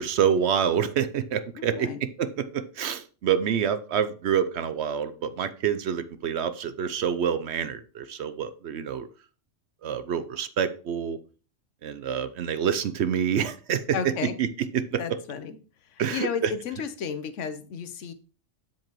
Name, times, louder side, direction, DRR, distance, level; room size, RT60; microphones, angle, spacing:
voice 1, 0.0-1.9 2.2-9.1 9.8-11.2 11.8-13.8 14.4-14.5 14.7-15.0 16.0-16.5, right 8 dB, 65° right, 12 dB, 0.8 m, -27 dB
voice 2, 1.5-2.0 13.9-14.4 15.0-15.6 15.9-18.1, left 7 dB, 70° left, 11 dB, 1.1 m, -33 dB
7.6 x 7.3 x 3.0 m, 0.37 s
omnidirectional pair, 1.3 m